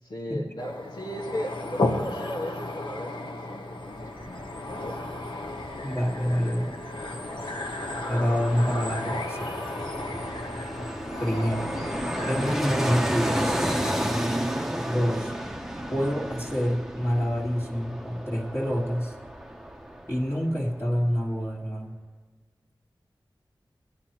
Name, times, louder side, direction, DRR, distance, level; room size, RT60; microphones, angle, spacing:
voice 1, 0.0-5.1 6.4-6.5 7.3-7.5 8.3-8.4 15.6-15.9, equal, 90° left, -5 dB, 1.5 m, -37 dB
sound 1, 0.6-14.5, left 2 dB, 65° left, 1.1 m, -34 dB
Fixed-wing aircraft airplane, 3.7-20.7 21.0-21.1, equal, 5° right, 0.8 m, -33 dB
voice 2, 5.8-6.8 8.1-9.5 11.2-11.8 12.3-13.6 14.8-15.3 15.9-19.1 20.1-21.9, equal, 30° left, -6 dB, 1.6 m, -27 dB
16.5 x 10.0 x 3.0 m, 1.4 s
wide cardioid pair, 65°, 9 cm